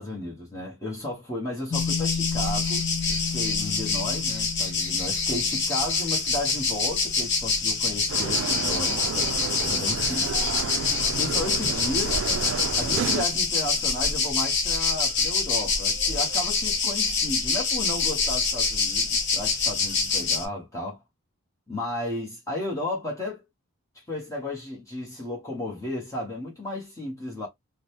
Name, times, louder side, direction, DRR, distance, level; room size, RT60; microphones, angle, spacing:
voice 1, 0.0-10.3 11.2-12.2 12.7-21.0 21.7-23.4 23.9-27.5, left 2 dB, 15° left, 1.1 m, -34 dB
sound 1, 1.7-20.5, left 4 dB, 50° left, 0.9 m, -26 dB
sound 2, 1.7-11.2, left 6 dB, 35° left, 0.3 m, -36 dB
sound 3, 8.1-13.2, right 6 dB, 65° right, 0.4 m, -31 dB
3.7 x 2.2 x 3.1 m
head